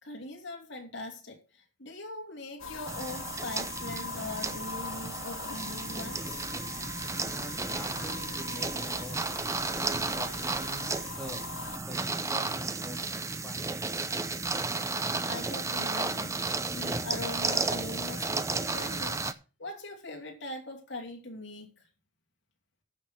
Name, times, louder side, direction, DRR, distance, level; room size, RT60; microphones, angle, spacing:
voice 1, 0.0-6.5 15.2-16.4 16.7-19.2 19.6-21.7, left 2 dB, 60° left, 3.0 m, -41 dB
sound 1, 2.6-11.8, left 5 dB, 85° left, 2.0 m, -41 dB
sound 2, 2.9-19.3, right 3 dB, 15° right, 0.6 m, -33 dB
voice 2, 7.3-9.3 9.6-11.5 11.8-13.8, equal, 5° left, 2.5 m, -45 dB
14.5 x 6.3 x 4.5 m
head